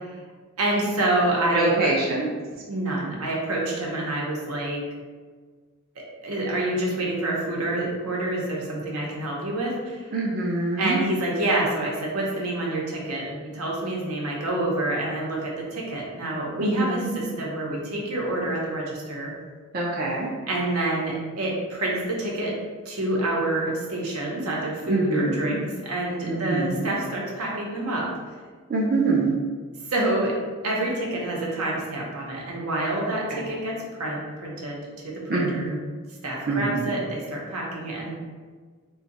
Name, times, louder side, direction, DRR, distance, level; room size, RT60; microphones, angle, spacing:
voice 1, 0.6-1.9 2.7-4.8 6.2-10.0 10.8-19.3 20.5-22.5 22.9-28.1 29.9-30.4 30.6-35.7 36.2-38.1, right 1 dB, 80° right, -2 dB, 0.8 m, -27 dB
voice 2, 1.5-2.3 10.1-11.0 16.6-17.2 19.7-20.3 24.9-25.6 26.3-26.9 28.7-29.3 33.1-33.4 35.3-35.8 36.5-36.9, right 2 dB, 40° right, -3 dB, 0.4 m, -25 dB
2.6 x 2.2 x 3.9 m, 1.5 s
head